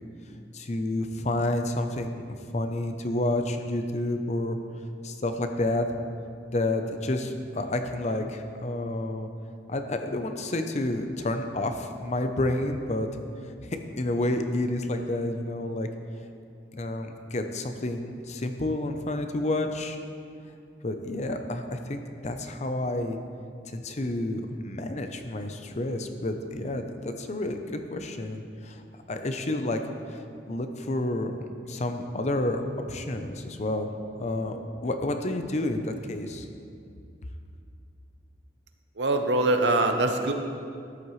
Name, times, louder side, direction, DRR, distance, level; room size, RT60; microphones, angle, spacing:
voice 1, 0.5-2.3 2.5-4.6 5.0-5.9 6.5-9.3 9.7-13.1 13.6-15.9 16.7-20.0 20.8-23.2 23.7-28.8 29.1-29.8 30.1-32.6 32.9-33.9 34.2-36.5, left 1 dB, 40° left, 6 dB, 0.7 m, -30 dB
voice 2, 39.0-40.3, right 2 dB, 80° right, 5 dB, 0.9 m, -23 dB
13.0 x 10.5 x 3.2 m, 2.4 s
head